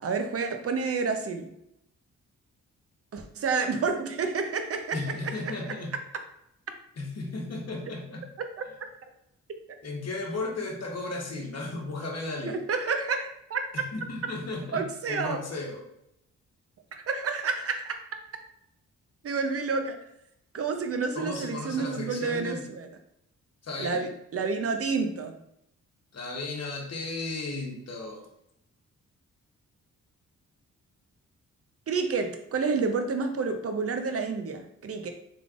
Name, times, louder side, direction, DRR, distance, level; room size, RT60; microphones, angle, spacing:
voice 1, 0.0-1.5 3.1-5.3 12.7-13.7 14.7-15.4 16.9-17.9 19.2-20.0 20.5-22.9 23.8-25.4 31.9-35.1, right 4 dB, 45° right, 6 dB, 0.7 m, -29 dB
voice 2, 4.9-6.0 7.0-8.3 8.7-8.8 9.8-12.6 13.7-15.8 21.1-22.6 23.6-24.1 26.1-28.3, left 2 dB, 50° left, 0 dB, 1.2 m, -35 dB
3.7 x 3.3 x 2.5 m, 0.80 s
supercardioid pair, 50°, 33 cm